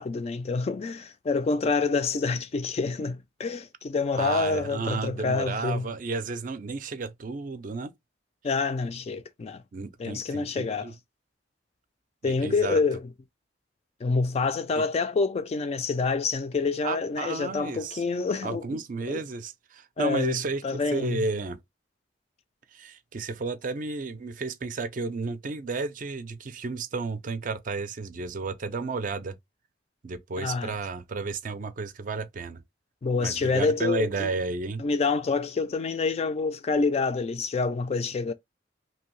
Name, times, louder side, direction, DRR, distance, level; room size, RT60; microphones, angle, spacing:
voice 1, 0.0-5.9 8.4-9.6 10.0-10.9 12.2-13.0 14.0-18.6 19.1-19.2 20.0-21.2 30.4-30.7 33.0-34.3 34.8-38.3, left 4 dB, 35° left, 0.3 m, -27 dB
voice 2, 4.2-7.9 9.7-10.9 12.2-12.8 14.8-14.9 16.8-18.0 18.4-20.6 20.9-21.6 22.7-29.4 30.0-32.6 33.2-34.8, right 4 dB, 45° right, 0.4 m, -32 dB
2.7 x 2.6 x 3.0 m
head